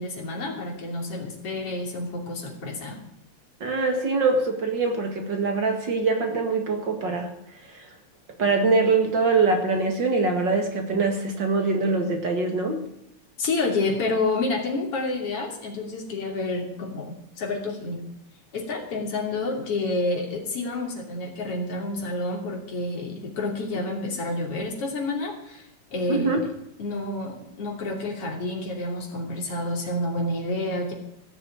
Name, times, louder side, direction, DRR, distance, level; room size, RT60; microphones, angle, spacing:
voice 1, 0.0-3.0 13.4-18.0 18.5-26.4 26.8-30.9, left 2 dB, 50° left, 0 dB, 3.8 m, -29 dB
voice 2, 3.6-7.3 7.7-7.8 8.4-12.8 26.1-26.4, right 3 dB, 40° right, 4 dB, 2.3 m, -23 dB
16.5 x 6.7 x 8.8 m, 0.81 s
omnidirectional pair, 3.4 m